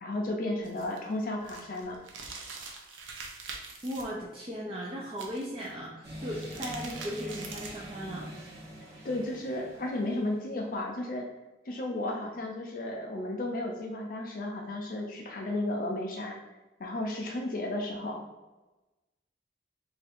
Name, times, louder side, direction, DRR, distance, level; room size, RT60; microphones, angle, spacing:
voice 1, 0.0-2.0 9.0-11.3 11.7-16.4 16.8-18.2, left 1 dB, 45° left, 0 dB, 0.4 m, -33 dB
sound 1, 0.6-4.0 5.1-5.7 6.2-7.9, right 4 dB, 90° right, 0.6 m, -44 dB
voice 2, 3.5-8.3, equal, 30° right, -4 dB, 0.4 m, -37 dB
sound 2, 6.0-10.4, equal, 55° right, 1.0 m, -44 dB
2.7 x 2.5 x 4.2 m, 1.1 s
head